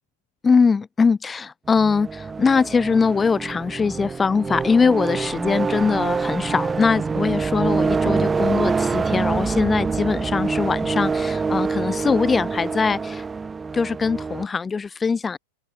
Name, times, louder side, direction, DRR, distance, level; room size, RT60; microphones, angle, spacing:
voice 1, 0.4-13.2 13.7-15.4, left 5 dB, 15° left, 0.8 m, -21 dB
sound 1, 1.7-14.5, right 4 dB, 15° right, 0.3 m, -25 dB
open air
figure-of-eight pair, 90°, 0 cm